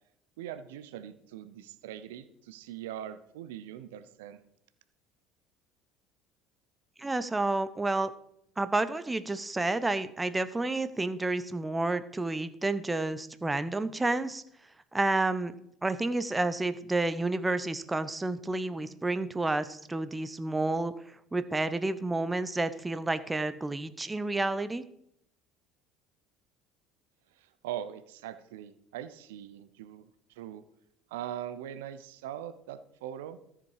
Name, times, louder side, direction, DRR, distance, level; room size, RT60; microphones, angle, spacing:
voice 1, 0.4-4.4 27.6-30.1 30.4-30.6 31.1-33.4, right 11 dB, 80° right, 12 dB, 0.7 m, -41 dB
voice 2, 7.0-8.1 8.6-14.4 14.9-15.5 15.8-20.9 21.3-24.8, right 2 dB, 15° right, 12 dB, 0.8 m, -30 dB
13.5 x 7.4 x 4.9 m, 0.74 s
hypercardioid pair, 70°, 0 cm